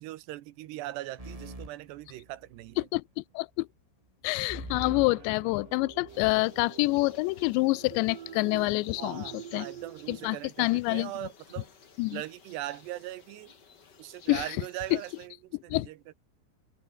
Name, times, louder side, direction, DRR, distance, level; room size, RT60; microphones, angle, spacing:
voice 1, 0.0-2.9 9.0-11.7 12.1-13.5 14.0-16.1, right 15 dB, 80° right, 2.9 m, -40 dB
sound 1, 1.2-2.8 4.5-6.2, right 1 dB, 10° right, 2.7 m, -44 dB
voice 2, 2.9-3.7 4.2-9.2 9.5-9.7 10.1-11.1 12.0-12.2 14.3-14.5 15.7-15.9, left 24 dB, 85° left, 2.8 m, -27 dB
sound 2, 4.8-10.3, right 10 dB, 55° right, 3.3 m, -47 dB
sound 3, 6.1-15.3, left 6 dB, 45° left, 1.3 m, -56 dB
open air
omnidirectional pair, 5.2 m